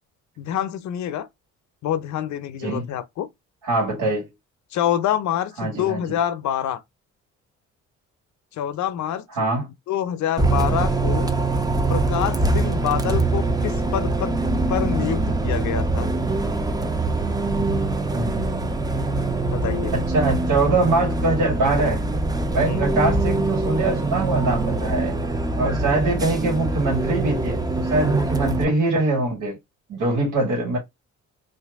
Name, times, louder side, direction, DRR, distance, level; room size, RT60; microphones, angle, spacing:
voice 1, 0.4-1.3 1.8-3.3 4.7-6.8 8.5-9.3 9.9-11.3 11.9-14.4 14.7-16.1 19.5-19.9 22.6-22.9, left 10 dB, 70° left, 0.6 m, -26 dB
voice 2, 3.6-4.2 5.6-6.0 9.3-9.7 18.1-18.5 19.9-22.0 22.5-25.1 25.6-29.6 29.9-30.8, right 2 dB, 85° right, 1.9 m, -23 dB
Bus, 10.4-28.6, right 2 dB, 15° right, 0.5 m, -23 dB
2.8 x 2.6 x 3.4 m
cardioid pair, 90°, 30 cm